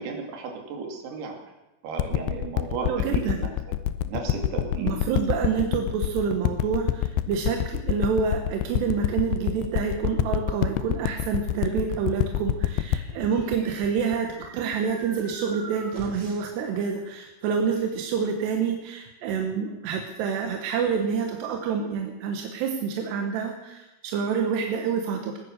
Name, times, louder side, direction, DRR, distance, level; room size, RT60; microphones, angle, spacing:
voice 1, 0.0-1.4 1.8-3.5 4.1-4.9 5.3-5.4 7.5-7.6, right 5 dB, 75° right, 2 dB, 4.4 m, -34 dB
sound 1, 2.0-14.7 15.3-15.4, left 13 dB, 85° left, 2.8 m, -27 dB
voice 2, 2.9-3.4 4.8-25.4, right 6 dB, 90° right, 3 dB, 3.4 m, -27 dB
sound 2, 13.1-16.6, right 2 dB, 50° right, 0.9 m, -44 dB
20.5 x 9.8 x 6.7 m, 0.99 s
omnidirectional pair, 4.7 m